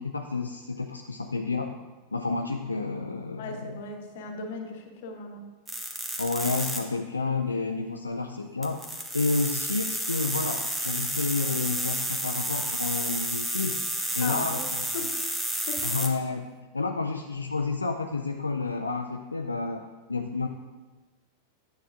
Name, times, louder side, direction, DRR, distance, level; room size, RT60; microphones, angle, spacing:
voice 1, 0.0-1.7 2.1-3.8 6.2-8.8 9.1-13.8 14.1-15.1 15.8-20.5, left 3 dB, 80° left, 4 dB, 0.3 m, -30 dB
voice 2, 3.3-5.4 14.2-14.6 14.9-15.1 15.7-15.9, left 3 dB, 50° left, 3 dB, 1.0 m, -37 dB
sound 1, 5.7-6.8 8.6-16.1, right 1 dB, 10° right, 0.9 m, -31 dB
9.1 x 7.2 x 2.5 m, 1.3 s
figure-of-eight pair, 90°, 0 cm